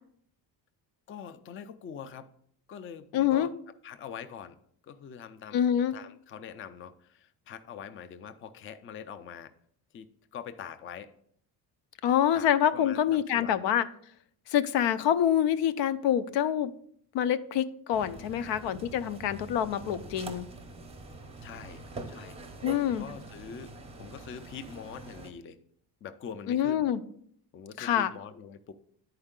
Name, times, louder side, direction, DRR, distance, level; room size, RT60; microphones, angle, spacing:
voice 1, 1.1-2.3 2.7-3.5 3.8-4.6 4.8-5.6 5.9-9.5 9.9-11.1 12.3-13.7 18.3-18.5 21.4-22.4 22.8-23.7 24.0-25.6 26.0-26.9 27.5-28.7, left 7 dB, 30° left, 11 dB, 0.4 m, -44 dB
voice 2, 3.1-3.5 5.5-5.9 12.0-13.8 14.5-16.7 17.1-20.5 22.6-23.1 26.5-27.0 27.8-28.1, left 10 dB, 90° left, 12 dB, 0.6 m, -26 dB
sound 1, 17.9-25.3, right 2 dB, 15° right, 0.6 m, -45 dB
10.5 x 4.5 x 3.7 m, 0.65 s
cardioid pair, 155°, 42 cm